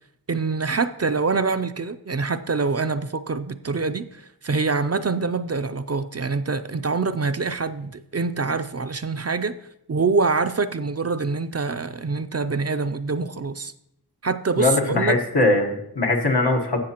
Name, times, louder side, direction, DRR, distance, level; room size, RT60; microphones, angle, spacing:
voice 1, 0.3-9.6 9.9-13.7 14.2-15.2, right 4 dB, 40° right, 0.4 m, -25 dB
voice 2, 14.6-16.8, left 2 dB, 80° left, 1.4 m, -21 dB
15.0 x 6.7 x 2.9 m
wide cardioid pair, 40°, 40 cm